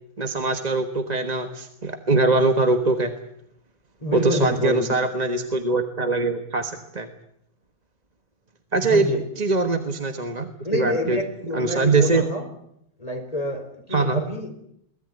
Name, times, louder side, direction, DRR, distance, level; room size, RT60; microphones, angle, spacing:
voice 1, 0.2-3.1 4.1-7.1 8.7-9.1 9.4-11.2 11.5-12.2 13.9-14.2, right 3 dB, 30° right, 7 dB, 1.4 m, -22 dB
voice 2, 4.0-4.9 8.8-9.2 10.6-12.4 13.0-14.5, left 1 dB, 25° left, 4 dB, 4.4 m, -27 dB
22.5 x 19.0 x 9.5 m, 0.75 s
omnidirectional pair, 1.6 m